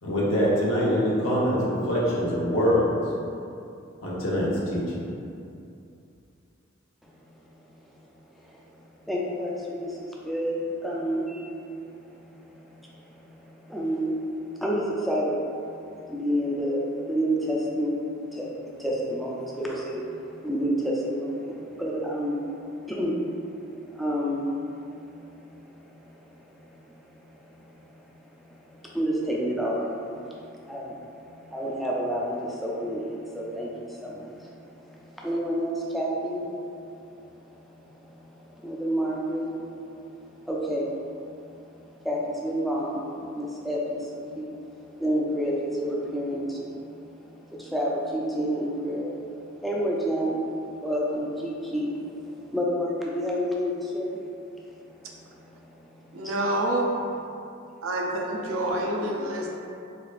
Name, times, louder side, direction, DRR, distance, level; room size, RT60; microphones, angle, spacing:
voice 1, 0.0-2.9 4.0-4.8, equal, 90° left, -6 dB, 0.9 m, -24 dB
voice 2, 7.0-56.4 58.5-58.6, equal, ahead, -5 dB, 0.4 m, -31 dB
voice 3, 56.1-56.9 57.8-59.5, right 1 dB, 85° right, -1 dB, 0.5 m, -27 dB
4.8 x 2.4 x 2.4 m, 2.6 s
head